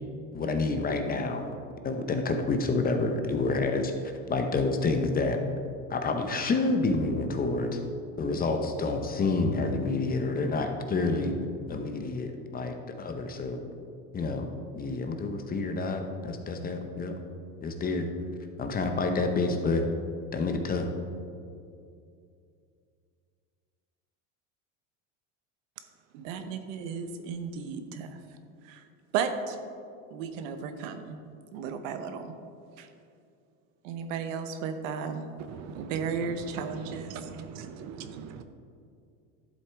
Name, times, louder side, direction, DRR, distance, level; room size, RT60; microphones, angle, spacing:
voice 1, 0.3-1.6 1.8-3.9 4.3-5.4 5.9-7.8 8.2-11.3 11.7-13.6 14.1-14.5 14.7-17.1 17.6-18.1 18.6-19.9 20.3-20.9, left 3 dB, 25° left, 5 dB, 0.7 m, -28 dB
voice 2, 26.1-28.2 28.6-28.9 29.1-29.6 30.1-31.2 31.5-32.3 32.8-32.9 33.8-35.3 35.7-37.4, right 6 dB, 80° right, 8 dB, 1.0 m, -34 dB
voice 3, 35.5-35.9 37.1-38.4, right 7 dB, 45° right, 9 dB, 0.6 m, -42 dB
11.5 x 7.7 x 3.4 m, 2.4 s
supercardioid pair, 125°, 39 cm